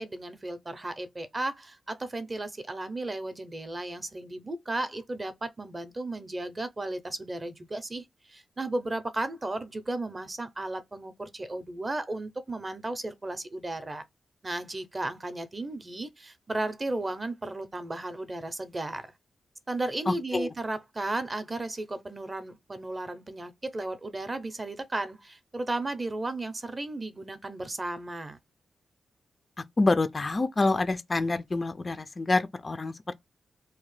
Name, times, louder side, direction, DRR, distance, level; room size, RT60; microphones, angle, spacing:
voice 1, 0.0-14.0 14.4-19.1 19.7-28.4, right 2 dB, 25° right, 0.5 m, -34 dB
voice 2, 20.1-20.5 29.8-33.1, left 3 dB, 30° left, 0.3 m, -27 dB
2.7 x 2.1 x 3.1 m
wide cardioid pair, 120°, 0 cm